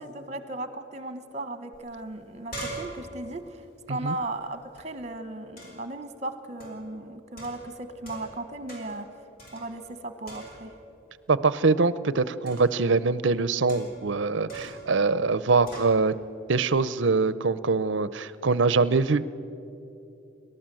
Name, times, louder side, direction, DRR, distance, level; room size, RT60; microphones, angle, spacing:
voice 1, 0.0-3.6 3.9-9.1 9.5-10.7, right 2 dB, 35° right, 10 dB, 1.2 m, -36 dB
sound 1, 1.7-1.8 2.1-4.8 5.6-6.0 6.6-6.9 7.4-8.4 8.7-9.1 9.4-10.0 10.3-10.9 12.5-12.8 13.7-14.1 14.5-14.9 15.7-16.0, right 2 dB, 45° left, 5.0 m, -42 dB
voice 2, 11.3-16.1 16.5-19.2, right 4 dB, 65° right, 16 dB, 0.6 m, -23 dB
29.0 x 12.5 x 7.6 m, 2.8 s
head